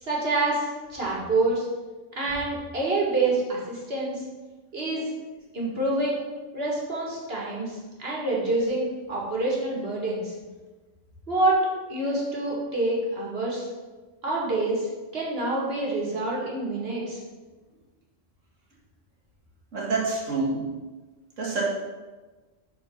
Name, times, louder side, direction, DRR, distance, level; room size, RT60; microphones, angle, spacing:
voice 1, 0.0-1.7 2.2-4.2 4.7-5.1 5.5-6.2 6.5-10.3 11.3-13.7 14.2-14.9 15.1-17.2, right 2 dB, 55° right, -4 dB, 2.1 m, -27 dB
voice 2, 19.7-20.7 21.4-21.6, right 3 dB, 85° right, -3 dB, 2.2 m, -27 dB
6.9 x 4.4 x 6.3 m, 1.3 s
omnidirectional pair, 1.3 m